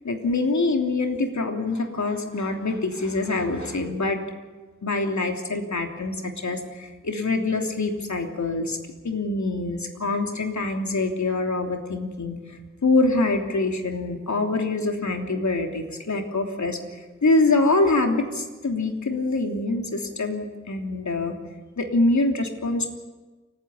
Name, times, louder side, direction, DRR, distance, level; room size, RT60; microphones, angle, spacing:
voice 1, 0.0-4.2 4.8-8.8 9.0-21.3 21.8-23.0, left 2 dB, 65° left, 3 dB, 3.2 m, -25 dB
29.5 x 10.0 x 9.8 m, 1.2 s
cardioid pair, 40°, 31 cm